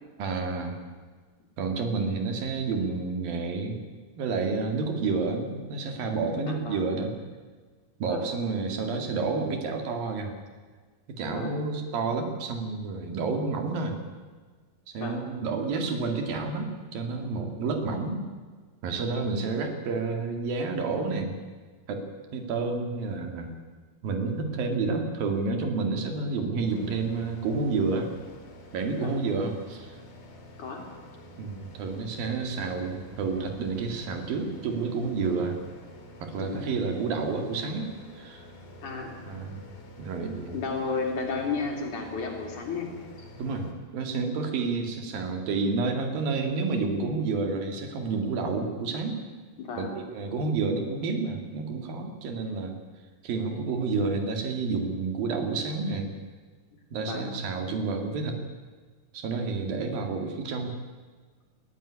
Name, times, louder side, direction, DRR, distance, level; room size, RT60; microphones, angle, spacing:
voice 1, 0.2-0.8 1.6-3.8 4.2-7.2 8.0-10.3 11.2-14.0 14.9-18.2 18.8-21.4 21.9-22.0 22.3-23.5 24.0-28.1 28.7-30.0 31.4-35.6 36.2-38.5 39.3-39.6 40.0-40.6 43.4-49.2 49.8-52.8 53.2-56.1 56.9-58.4 59.1-60.7, right 4 dB, 70° right, 5 dB, 3.7 m, -30 dB
voice 2, 6.5-6.9 8.1-8.2 11.3-11.5 15.0-15.2 29.0-29.2 30.6-30.8 36.4-36.7 38.8-39.1 40.5-42.9 43.2-43.3 49.6-50.0 57.1-57.3, left 4 dB, 55° left, 1 dB, 4.4 m, -33 dB
sound 1, 26.6-43.7, equal, 70° left, 5.0 m, -48 dB
20.0 x 14.5 x 9.8 m, 1.4 s
omnidirectional pair, 4.4 m